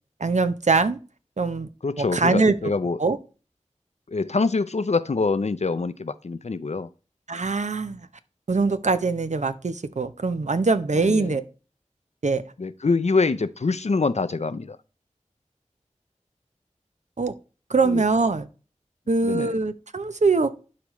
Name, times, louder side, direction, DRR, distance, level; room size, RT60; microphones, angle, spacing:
voice 1, 0.2-1.0 1.4-1.7 2.0-2.7 3.0-3.2 7.3-8.0 8.5-11.4 12.2-12.4 17.2-17.3 17.7-18.5 19.1-20.5, right 3 dB, 65° right, 0.7 m, -22 dB
voice 2, 1.8-3.0 4.1-6.9 10.9-11.3 12.6-14.8 17.8-18.0 19.2-19.6, left 4 dB, 60° left, 0.6 m, -25 dB
11.5 x 4.9 x 3.1 m
wide cardioid pair, 50°, 13 cm